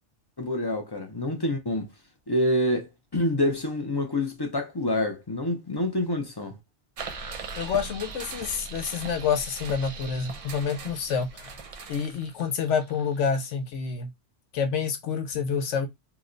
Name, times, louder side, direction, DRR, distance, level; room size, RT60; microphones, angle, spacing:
voice 1, 0.4-1.9 2.3-6.5, left 1 dB, 30° left, 0.4 m, -27 dB
sound 1, 7.0-13.5, right 4 dB, 65° right, 0.3 m, -40 dB
voice 2, 7.5-11.5 11.9-14.1 14.5-15.9, left 6 dB, 85° left, 1.0 m, -28 dB
2.9 x 2.1 x 3.7 m
omnidirectional pair, 1.2 m